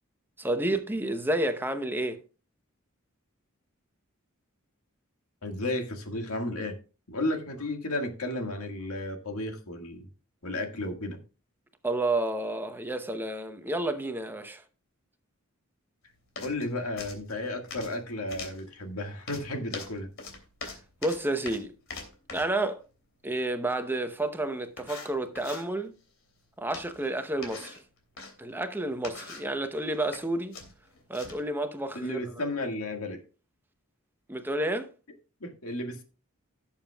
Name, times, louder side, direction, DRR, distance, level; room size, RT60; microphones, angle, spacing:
voice 1, 0.4-2.2 11.8-14.6 21.0-21.7 22.3-22.8 23.2-25.9 26.6-27.8 28.4-30.5 31.1-32.2 34.3-34.9, right 1 dB, 10° right, 0.8 m, -30 dB
voice 2, 5.4-6.8 7.1-10.1 10.4-11.2 16.4-20.1 32.0-33.2 35.4-36.0, left 1 dB, 90° left, 1.8 m, -33 dB
sound 1, 16.4-16.7 17.0-18.0 18.3-18.6 19.3-22.6 24.1-24.2 24.8-25.7 26.7-27.1 27.4-28.3 28.9-29.5 29.9-30.2 30.5-31.5, left 4 dB, 65° left, 3.0 m, -42 dB
17.0 x 7.2 x 2.3 m
head